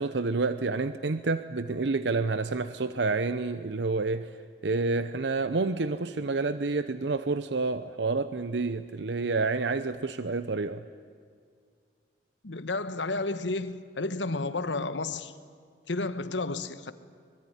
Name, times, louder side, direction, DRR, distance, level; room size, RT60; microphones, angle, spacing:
voice 1, 0.0-4.3 4.6-10.8, right 3 dB, 70° right, 0.8 m, -29 dB
voice 2, 12.4-15.3 15.9-16.9, left 3 dB, 80° left, 1.2 m, -31 dB
24.5 x 22.0 x 9.9 m
head